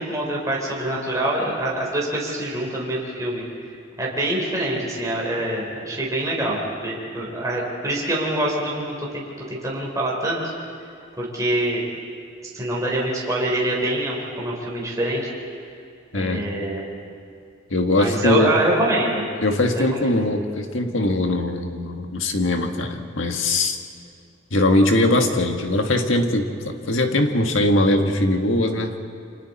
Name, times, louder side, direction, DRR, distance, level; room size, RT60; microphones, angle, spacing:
voice 1, 0.0-3.4 4.0-10.4 11.2-11.8 12.5-15.3 16.1-16.8 18.0-19.3 19.7-20.1, right 1 dB, 15° right, -3 dB, 3.7 m, -25 dB
voice 2, 16.1-16.5 17.7-18.6 19.4-23.8 24.5-28.9, left 1 dB, 70° left, 4 dB, 1.8 m, -21 dB
30.0 x 25.5 x 4.3 m, 2.5 s
head